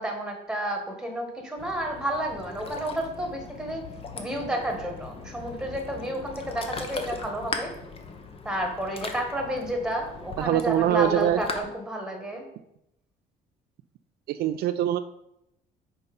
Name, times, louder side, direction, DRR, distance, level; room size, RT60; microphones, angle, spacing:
voice 1, 0.0-3.8 4.1-7.7 8.4-12.4, right 1 dB, 5° right, 2 dB, 1.4 m, -31 dB
Ocean, 1.6-11.6, left 4 dB, 35° left, 0.9 m, -39 dB
voice 2, 10.4-11.4 14.3-15.0, right 12 dB, 70° right, 10 dB, 0.4 m, -23 dB
5.3 x 4.4 x 5.3 m, 0.83 s
cardioid pair, 110°, 17 cm